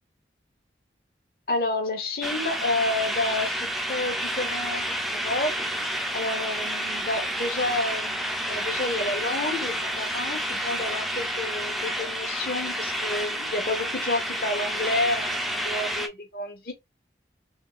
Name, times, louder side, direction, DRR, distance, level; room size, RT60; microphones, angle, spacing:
voice 1, 1.5-3.6 3.9-4.8 5.1-5.5 6.1-16.7, left 2 dB, 55° left, 0.9 m, -30 dB
sound 1, 2.2-16.1, equal, ahead, 0.3 m, -30 dB
3.4 x 2.3 x 3.1 m
head